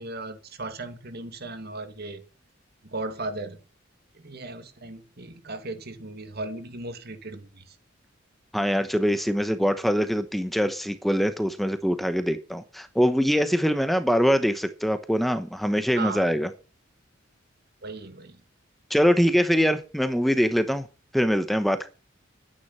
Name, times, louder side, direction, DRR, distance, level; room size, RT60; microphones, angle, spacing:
voice 1, 0.0-2.2 2.8-3.6 4.1-7.7 15.9-16.3 17.8-18.4, right 2 dB, 55° right, 2.3 m, -36 dB
voice 2, 8.5-16.5 18.9-20.9 21.1-21.9, equal, ahead, 1.0 m, -23 dB
12.0 x 9.9 x 5.6 m
head